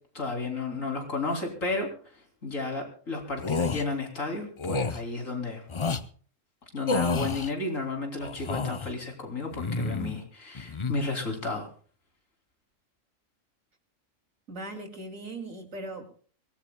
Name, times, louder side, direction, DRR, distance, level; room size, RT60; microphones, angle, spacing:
voice 1, 0.1-1.9 2.4-5.6 6.7-11.7, left 3 dB, 85° left, 2 dB, 3.7 m, -32 dB
sound 1, 3.4-3.8 4.6-5.0 5.7-6.0 6.9-7.5 8.2-8.9 9.5-10.2 10.5-10.9, left 4 dB, 35° left, 0.5 m, -29 dB
voice 2, 14.5-16.1, right 2 dB, 85° right, 5 dB, 3.0 m, -39 dB
24.0 x 18.5 x 2.2 m, 0.43 s
omnidirectional pair, 1.3 m